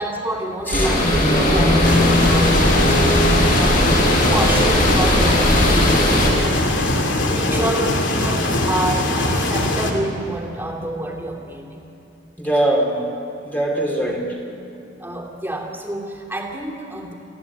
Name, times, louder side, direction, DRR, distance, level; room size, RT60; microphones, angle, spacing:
voice 1, 0.0-3.2 3.5-4.0 4.3-6.1 7.3-11.8 14.0-14.2 15.0-17.1, right 1 dB, 10° right, -1 dB, 2.8 m, -28 dB
sound 1, 0.7-6.3, left 1 dB, 45° left, 5.8 m, -17 dB
sound 2, 1.8-9.9, left 2 dB, 85° left, 2.7 m, -21 dB
voice 2, 12.4-13.1 13.4-14.3, right 1 dB, 10° left, -1 dB, 2.5 m, -21 dB
28.5 x 14.5 x 8.4 m, 2.9 s
head